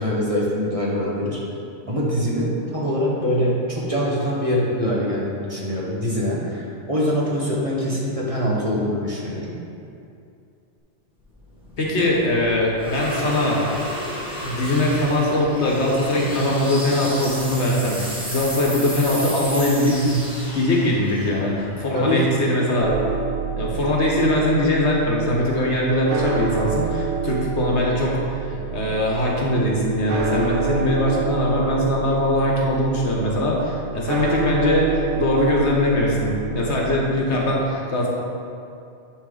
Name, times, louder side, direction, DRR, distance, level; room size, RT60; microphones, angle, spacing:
voice 1, 0.0-1.4 1.9-9.6 21.9-22.4, equal, 30° right, -5 dB, 1.4 m, -23 dB
sound 1, 11.3-22.5, equal, 5° right, 1.5 m, -33 dB
voice 2, 11.8-13.6 14.4-20.2 20.5-22.9 23.6-34.9 35.1-38.1, left 1 dB, 65° left, -3 dB, 1.5 m, -21 dB
sound 2, 22.8-36.8, right 5 dB, 85° right, 1.2 m, -28 dB
10.5 x 5.4 x 4.0 m, 2.6 s
omnidirectional pair, 1.2 m